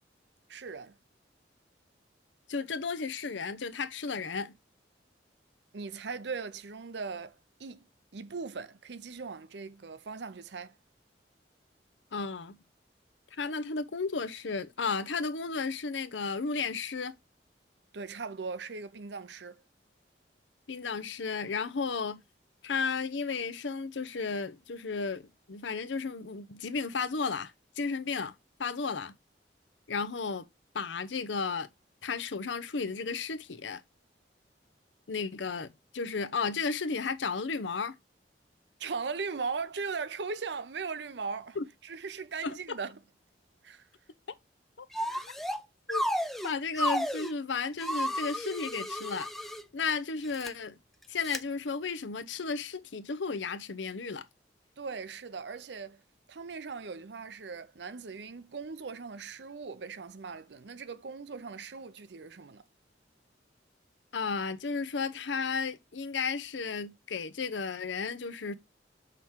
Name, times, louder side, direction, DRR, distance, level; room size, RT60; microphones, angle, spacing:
voice 1, 0.5-1.0 5.7-7.9 8.1-10.8 17.9-19.6 38.8-41.6 41.8-43.0 43.6-43.9 45.1-45.3 54.8-56.0 56.3-62.6, right 5 dB, 70° right, 0.6 m, -39 dB
voice 2, 2.5-4.5 12.1-12.6 13.3-17.1 20.7-22.2 22.6-28.3 28.6-29.1 29.9-30.4 30.7-31.7 32.0-33.8 35.1-38.0 41.6-41.7 42.4-42.6 44.8-44.9 45.9-46.0 46.4-49.3 49.7-50.7 51.1-54.2 64.1-68.5, left 4 dB, 90° left, 0.7 m, -33 dB
sound 1, 44.9-45.6 45.9-47.3 47.8-49.6 50.2-50.5 51.2-51.4, equal, ahead, 0.4 m, -32 dB
5.9 x 3.7 x 4.5 m
head